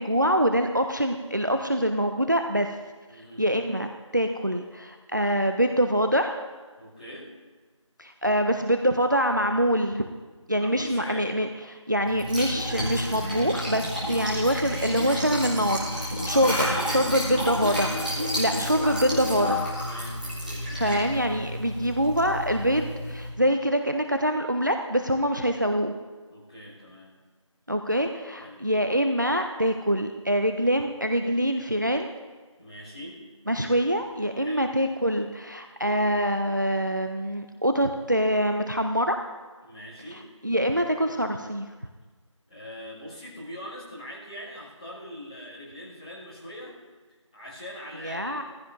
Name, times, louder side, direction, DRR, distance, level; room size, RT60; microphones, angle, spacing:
voice 1, 0.0-2.7 3.4-3.9 4.1-6.4 8.0-10.1 10.5-17.9 18.4-19.7 20.8-25.9 27.7-32.1 33.5-39.2 40.4-41.7 48.0-48.4, equal, 35° right, 6 dB, 0.5 m, -25 dB
voice 2, 3.1-3.4 6.8-7.3 10.5-11.3 16.3-18.7 19.8-20.7 26.3-27.1 28.4-28.6 32.6-33.2 34.3-34.7 39.6-40.3 42.5-46.8 47.1-48.4, equal, 15° left, -12 dB, 2.4 m, -41 dB
Liquid, 12.0-23.3, equal, 15° right, 2.2 m, -30 dB
18.0 x 14.5 x 2.6 m, 1.3 s
figure-of-eight pair, 175°, 17 cm